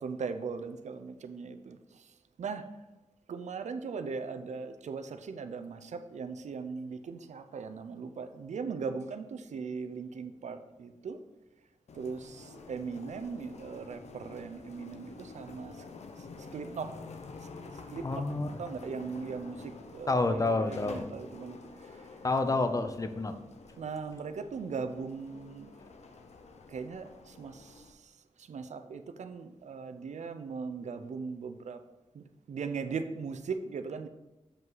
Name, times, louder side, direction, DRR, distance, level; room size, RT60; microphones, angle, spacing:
voice 1, 0.0-2.1 2.4-2.7 3.3-11.2 11.9-15.8 16.4-16.9 17.9-18.2 18.6-21.6 21.8-22.1 23.8-25.7 26.7-28.1 28.4-31.8 32.1-34.1, right 5 dB, 85° right, 9 dB, 0.6 m, -39 dB
sound 1, 11.9-27.9, left 3 dB, 70° left, 0.7 m, -49 dB
voice 2, 18.0-18.5 20.1-21.1 22.2-23.3, left 3 dB, 30° left, 9 dB, 0.5 m, -29 dB
7.3 x 5.4 x 3.9 m, 1.0 s
wide cardioid pair, 140°, 12 cm